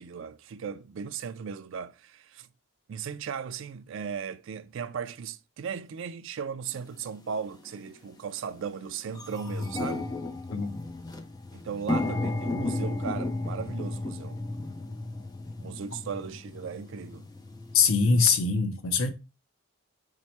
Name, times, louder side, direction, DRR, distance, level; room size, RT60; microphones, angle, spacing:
voice 1, 0.0-2.5 2.9-10.1 11.5-14.4 15.6-17.2, right 6 dB, 65° right, 0.4 m, -37 dB
sound 1, 6.8-6.9 7.7-7.9 8.3-8.4 8.7-18.4, left 2 dB, 20° left, 0.5 m, -34 dB
voice 2, 10.5-10.8 17.7-19.1, left 5 dB, 75° left, 0.7 m, -23 dB
4.6 x 2.1 x 4.2 m
head